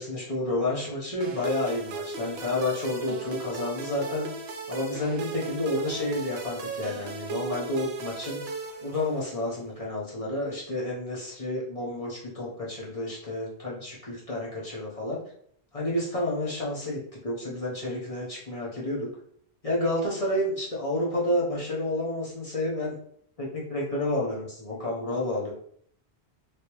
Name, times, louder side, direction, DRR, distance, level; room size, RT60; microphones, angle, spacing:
voice 1, 0.0-4.3 4.7-8.4 8.8-15.2 15.7-19.1 19.6-23.0 23.4-25.5, left 1 dB, 35° left, -5 dB, 0.8 m, -30 dB
sound 1, 1.2-9.5, right 5 dB, 70° right, 0.9 m, -37 dB
3.3 x 2.8 x 2.9 m, 0.65 s
omnidirectional pair, 1.1 m